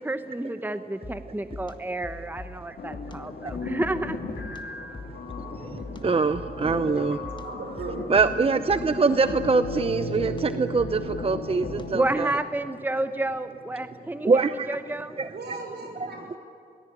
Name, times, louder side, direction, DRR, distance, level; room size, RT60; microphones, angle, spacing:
voice 1, 0.0-4.2 11.9-15.2, right 2 dB, 10° right, 10 dB, 1.0 m, -30 dB
sound 1, 1.0-12.2, left 2 dB, 25° left, 1.7 m, -43 dB
sound 2, 2.8-12.3, left 4 dB, 80° left, 2.0 m, -36 dB
voice 2, 5.6-7.2 8.1-12.4 14.2-14.8 15.2-15.3 16.0-16.1, right 4 dB, 35° right, 11 dB, 0.7 m, -24 dB
voice 3, 7.4-8.0 15.3-16.4, right 3 dB, 80° right, 2 dB, 6.0 m, -37 dB
23.0 x 18.5 x 9.9 m, 2.5 s
cardioid pair, 70°, 17 cm